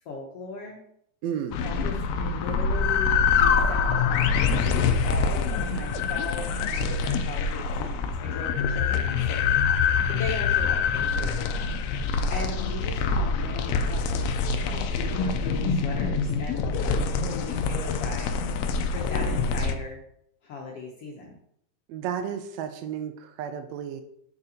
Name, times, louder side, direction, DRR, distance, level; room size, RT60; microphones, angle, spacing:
voice 1, 0.0-0.8 1.6-9.5 9.8-11.7 12.3-18.3 18.9-20.0 20.4-21.4, left 3 dB, 70° left, -1 dB, 1.5 m, -38 dB
voice 2, 1.2-1.6 21.9-24.0, right 8 dB, 90° right, 7 dB, 1.5 m, -32 dB
sound 1, 1.5-19.8, left 5 dB, 90° left, 1.5 m, -25 dB
8.3 x 6.8 x 2.8 m, 0.72 s
omnidirectional pair, 3.7 m